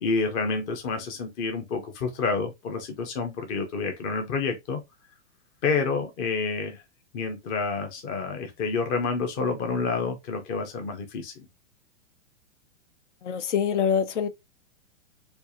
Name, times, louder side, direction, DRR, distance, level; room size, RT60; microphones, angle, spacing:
voice 1, 0.0-4.8 5.6-6.8 7.1-11.5, left 4 dB, 25° left, 0.6 m, -29 dB
voice 2, 13.2-14.3, left 7 dB, 75° left, 0.8 m, -25 dB
4.4 x 2.5 x 2.7 m
hypercardioid pair, 145°, 36 cm